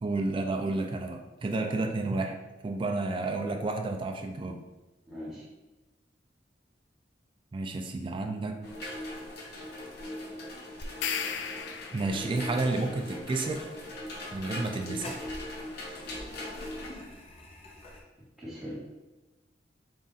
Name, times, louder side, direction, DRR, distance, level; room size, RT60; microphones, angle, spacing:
voice 1, 0.0-2.4 2.6-4.6 7.5-8.6 11.9-13.7 14.3-15.2, right 2 dB, 30° right, 5 dB, 0.3 m, -31 dB
voice 2, 5.1-5.5 18.4-18.8, equal, ahead, -9 dB, 1.0 m, -40 dB
sound 1, 8.6-16.9, left 1 dB, 60° left, 0.8 m, -40 dB
sound 2, 10.8-12.4, left 7 dB, 80° left, 0.3 m, -35 dB
sound 3, 11.3-18.0, left 1 dB, 35° left, 0.6 m, -48 dB
3.7 x 2.4 x 4.0 m, 1.1 s
head